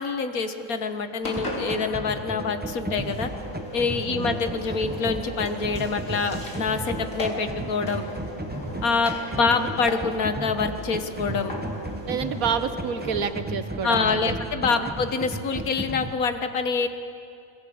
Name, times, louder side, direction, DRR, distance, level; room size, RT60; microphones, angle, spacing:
voice 1, 0.0-3.3 3.7-8.0 8.8-11.5 13.8-16.9, left 4 dB, 80° left, 8 dB, 1.8 m, -26 dB
Engine, 1.2-13.3, equal, 65° left, 4.2 m, -37 dB
sound 1, 1.4-16.1, right 1 dB, 10° right, 0.9 m, -35 dB
voice 2, 4.1-4.4 12.1-14.3 14.7-14.9, right 6 dB, 75° right, 10 dB, 1.6 m, -29 dB
27.0 x 21.5 x 7.9 m, 2.6 s
omnidirectional pair, 1.5 m